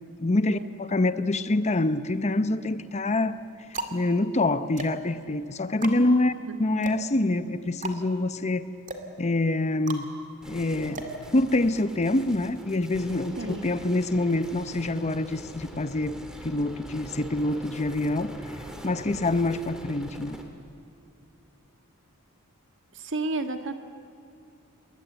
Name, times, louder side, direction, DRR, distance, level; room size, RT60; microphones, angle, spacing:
voice 1, 0.2-3.4 3.7-6.3 6.6-8.7 9.2-10.1 10.5-16.2 16.4-18.3 18.8-20.4, left 2 dB, 30° left, 13 dB, 0.7 m, -26 dB
sound 1, 1.8-2.5 3.2-11.9, right 3 dB, 35° right, 2.1 m, -40 dB
sound 2, 10.4-20.4, right 1 dB, 5° right, 2.4 m, -43 dB
voice 2, 13.4-13.7 22.9-23.7, right 2 dB, 60° right, 7 dB, 1.8 m, -32 dB
28.5 x 21.0 x 8.1 m, 2.5 s
head